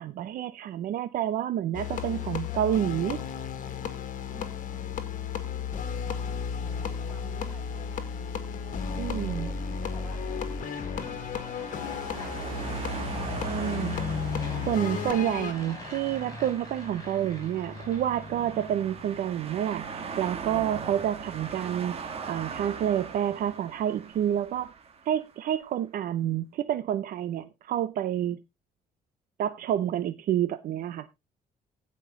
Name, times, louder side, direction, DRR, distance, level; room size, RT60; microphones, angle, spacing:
voice 1, 0.0-3.2 9.0-9.5 13.4-14.0 14.7-22.0 22.3-24.7 25.1-28.4 29.4-31.1, right 11 dB, 65° right, 0.7 m, -29 dB
sound 1, 1.7-15.5, left 7 dB, 55° left, 1.8 m, -34 dB
voice 2, 4.3-5.2 6.6-8.1 8.6-10.2 14.8-15.1, equal, 10° right, 6.0 m, -53 dB
Fixed-wing aircraft airplane, 8.4-19.4, left 2 dB, 20° left, 5.7 m, -41 dB
sound 2, 9.9-25.3, right 6 dB, 40° right, 1.8 m, -40 dB
16.0 x 5.4 x 3.7 m
cardioid pair, 150°, 16 cm